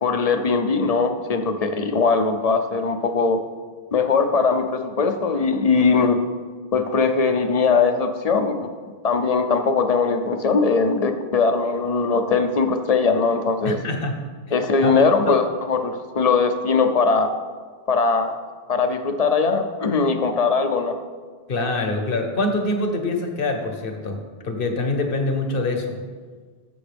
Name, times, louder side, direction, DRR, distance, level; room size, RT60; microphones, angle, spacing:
voice 1, 0.0-3.4 3.9-6.2 6.7-8.7 9.0-13.8 14.5-17.3 17.9-18.4 18.7-20.9, left 4 dB, 40° left, 7 dB, 0.7 m, -20 dB
voice 2, 13.6-14.2 14.8-15.4 21.5-26.0, left 2 dB, 60° left, 4 dB, 1.3 m, -25 dB
14.5 x 7.0 x 3.5 m, 1.5 s
omnidirectional pair, 1.0 m